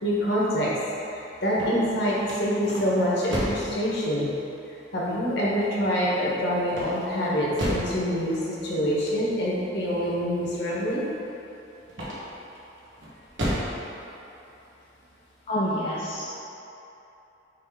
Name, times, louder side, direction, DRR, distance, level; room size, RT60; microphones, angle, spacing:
voice 1, 0.0-0.7 1.4-4.3 4.9-11.0, equal, 65° left, -6 dB, 1.4 m, -25 dB
sound 1, 1.4-3.7 6.7-8.0 11.9-12.5 13.0-13.8, equal, 85° right, 1.4 m, -31 dB
voice 2, 15.5-16.3, equal, 35° left, -8 dB, 0.7 m, -27 dB
6.6 x 3.5 x 4.7 m, 2.9 s
head